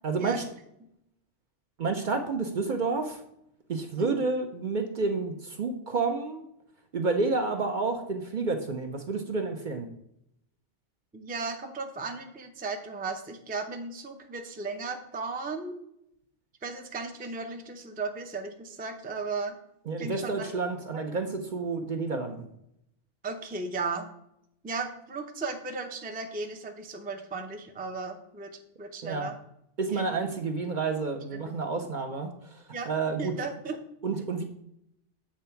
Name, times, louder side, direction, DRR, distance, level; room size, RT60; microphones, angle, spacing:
voice 1, 0.0-0.4 1.8-3.2 3.7-6.5 6.9-9.9 19.9-22.5 29.0-29.3 29.8-33.3 34.0-34.4, right 4 dB, 50° right, 4 dB, 0.7 m, -30 dB
voice 2, 11.1-15.8 16.6-19.6 20.0-20.5 20.9-21.0 23.2-24.1 24.6-28.5 28.8-29.3 29.9-30.1 31.3-31.5 32.7-32.9 33.2-33.8, right 4 dB, 10° right, 4 dB, 0.4 m, -35 dB
7.5 x 3.4 x 5.7 m, 0.77 s
omnidirectional pair, 1.2 m